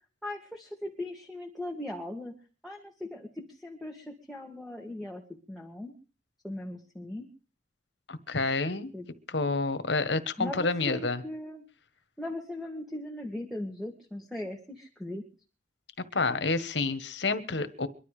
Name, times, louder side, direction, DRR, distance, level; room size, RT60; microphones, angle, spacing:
voice 1, 0.2-2.3 2.6-5.2 5.5-5.9 6.4-7.3 8.9-9.1 10.4-11.6 12.2-15.2, left 1 dB, ahead, 1 dB, 2.2 m, -39 dB
voice 2, 8.1-8.9 9.3-11.2 16.1-17.9, left 3 dB, 80° left, 12 dB, 1.5 m, -29 dB
23.5 x 12.0 x 5.0 m, 0.38 s
head